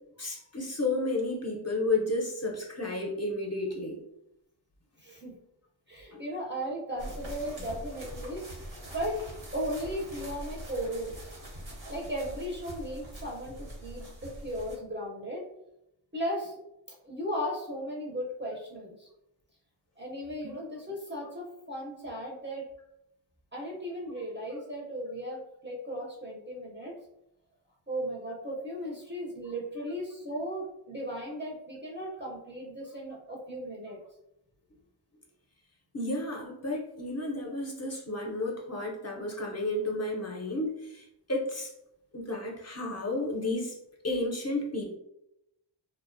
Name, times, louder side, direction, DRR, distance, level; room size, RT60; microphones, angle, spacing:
voice 1, 0.2-4.0 6.1-6.2 20.4-20.5 35.9-41.7 42.1-43.8 44.0-45.0, left 2 dB, 35° left, -1 dB, 0.5 m, -32 dB
voice 2, 5.0-5.4 5.9-8.4 8.9-9.2 9.5-11.3 11.8-15.4 16.1-16.6 17.0-19.1 20.0-22.6 23.5-26.9 27.9-34.0, equal, 25° right, -2 dB, 0.5 m, -36 dB
sound 1, 7.0-14.8, right 1 dB, 80° right, 0.9 m, -43 dB
2.4 x 2.1 x 2.4 m, 0.83 s
wide cardioid pair, 65°, 47 cm